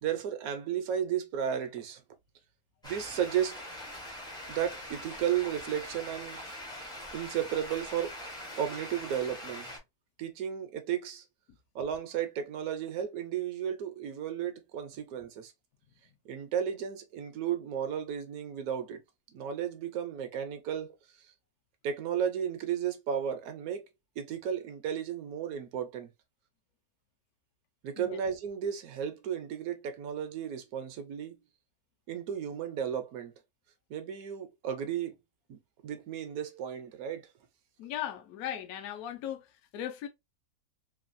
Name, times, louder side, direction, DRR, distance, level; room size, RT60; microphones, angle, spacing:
voice 1, 0.0-2.0 2.8-3.6 4.5-6.4 7.1-8.2 8.6-9.7 10.2-11.2 11.7-15.5 16.3-19.0 19.3-20.9 21.2-21.3 21.8-23.9 24.2-26.1 27.8-31.4 32.1-33.3 33.9-35.1 35.5-37.3, right 9 dB, 70° right, 0.9 m, -34 dB
sound 1, 2.8-9.8, left 1 dB, 5° left, 0.3 m, -43 dB
voice 2, 37.8-40.1, left 11 dB, 70° left, 1.0 m, -38 dB
3.0 x 2.2 x 2.5 m
omnidirectional pair, 1.7 m